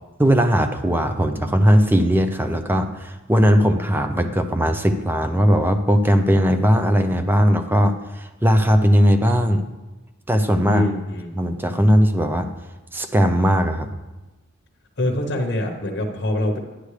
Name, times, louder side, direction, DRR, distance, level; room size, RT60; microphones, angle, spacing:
voice 1, 0.2-9.6 10.3-10.9 11.3-12.5 12.9-13.9, equal, 10° right, 8 dB, 0.6 m, -18 dB
voice 2, 10.7-11.4 15.0-16.6, left 1 dB, 50° left, 2 dB, 1.0 m, -24 dB
10.5 x 9.8 x 3.3 m, 1.1 s
head